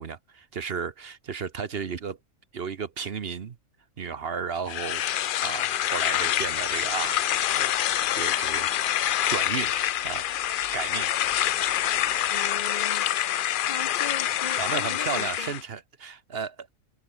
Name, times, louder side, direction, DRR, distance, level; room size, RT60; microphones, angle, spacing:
voice 1, 0.0-2.2 2.5-3.6 4.0-5.0 5.4-7.2 7.5-8.7 9.3-9.7 10.0-10.2 10.7-11.1 13.4-13.5 14.5-16.7, right 6 dB, 50° right, 1.1 m, -33 dB
sound 1, 4.7-15.6, left 11 dB, 80° left, 0.4 m, -26 dB
sound 2, 5.7-12.6, right 5 dB, 65° right, 2.2 m, -55 dB
voice 2, 12.3-13.1 13.6-15.5, left 5 dB, 45° left, 0.7 m, -39 dB
open air
omnidirectional pair, 1.4 m